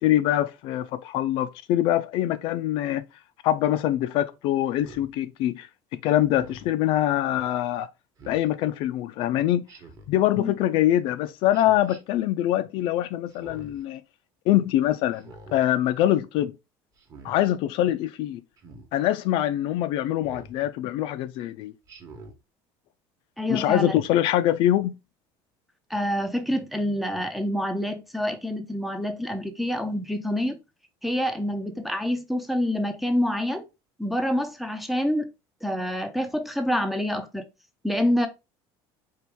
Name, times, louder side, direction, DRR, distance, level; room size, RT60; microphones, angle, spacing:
voice 1, 0.0-3.0 3.4-7.9 8.3-9.6 10.1-14.0 14.5-16.6 17.2-18.4 18.9-21.7 23.5-25.0, left 13 dB, 55° left, 0.4 m, -24 dB
Speech synthesizer, 4.8-5.1 6.2-6.7 8.2-8.5 9.7-10.2 11.5-12.0 13.3-13.8 15.1-15.6 17.0-17.4 18.6-18.9 20.2-20.6 21.9-22.4, right 2 dB, 30° right, 1.0 m, -46 dB
voice 2, 23.4-24.0 25.9-30.6 31.0-33.7 34.0-35.3 35.6-37.4 37.8-38.3, equal, ahead, 0.4 m, -27 dB
4.6 x 3.0 x 3.4 m
cardioid pair, 170°, 11 cm